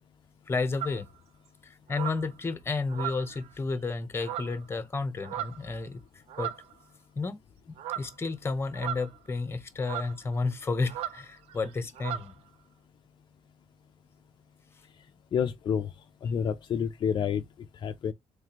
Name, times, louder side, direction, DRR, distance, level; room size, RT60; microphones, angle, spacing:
voice 1, 0.5-1.1 1.6-6.0 6.4-6.5 7.2-7.4 8.0-12.3, left 3 dB, 25° left, 0.8 m, -31 dB
sound 1, 0.8-1.0 1.9-2.3 2.9-3.5 4.2-4.6 5.2-5.7 6.3-6.7 7.8-8.1 8.7-9.3 9.8-10.2 10.9-11.2 11.5-11.7 11.9-12.3, right 12 dB, 75° right, 0.5 m, -36 dB
voice 2, 15.3-15.9 16.2-17.4 17.8-18.1, left 7 dB, 45° left, 0.4 m, -28 dB
3.4 x 3.2 x 2.8 m
cardioid pair, 100°, 11 cm